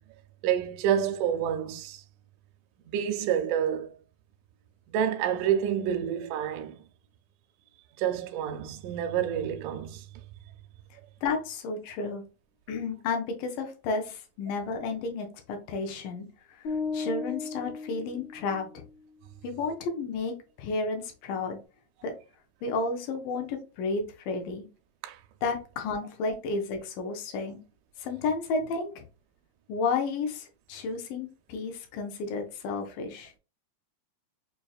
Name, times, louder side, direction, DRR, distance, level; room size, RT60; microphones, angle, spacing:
voice 1, 0.4-2.0 2.9-3.9 4.9-6.8 8.0-10.1 25.0-25.2, right 9 dB, 80° right, 1.9 m, -28 dB
voice 2, 11.2-12.2 12.7-18.8 19.4-21.6 22.0-22.1 22.6-24.7 25.4-27.6 28.0-28.9 29.7-33.3, left 4 dB, 80° left, 2.2 m, -32 dB
sound 1, 16.6-18.8, left 4 dB, 65° left, 2.3 m, -35 dB
5.8 x 2.7 x 2.3 m
omnidirectional pair, 4.0 m